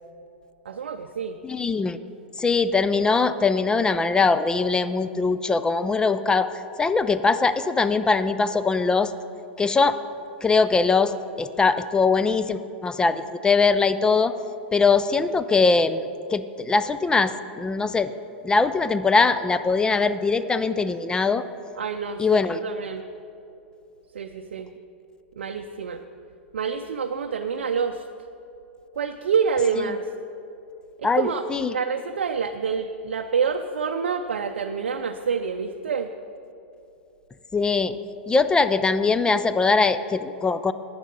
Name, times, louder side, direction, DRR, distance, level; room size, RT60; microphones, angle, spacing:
voice 1, 0.6-1.4 21.8-23.1 24.1-24.7 25.4-26.0 26.5-28.1 29.0-30.1 31.0-36.1, right 6 dB, 75° right, 6 dB, 0.5 m, -27 dB
voice 2, 1.4-2.0 2.4-6.5 6.8-9.1 9.6-10.0 10.4-14.3 14.7-16.0 16.3-18.1 18.4-21.4 22.2-22.6 31.0-31.7 37.5-38.0 38.3-40.7, left 4 dB, 15° left, 12 dB, 0.4 m, -21 dB
10.5 x 9.5 x 5.3 m, 2.8 s
hypercardioid pair, 100°, 6 cm